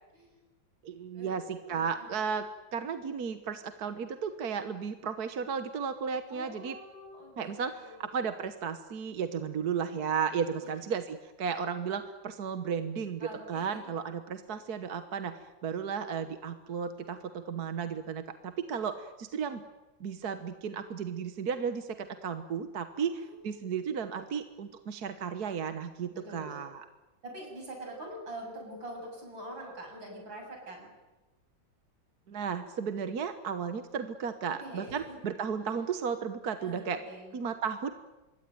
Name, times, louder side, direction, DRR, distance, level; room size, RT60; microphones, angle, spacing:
voice 1, 0.8-2.5 2.7-6.8 7.4-19.6 20.0-26.8 32.3-37.0 37.3-37.9, right 6 dB, 55° right, 9 dB, 1.6 m, -34 dB
voice 2, 1.7-2.1 6.3-8.1 10.3-10.9 13.2-13.9 14.4-14.6 22.9-23.7 26.1-26.6 27.2-30.9 34.5-35.2 35.6-35.7 36.6-37.5, right 1 dB, 80° right, 2 dB, 8.4 m, -45 dB
26.0 x 22.5 x 9.3 m, 1.1 s
omnidirectional pair, 2.1 m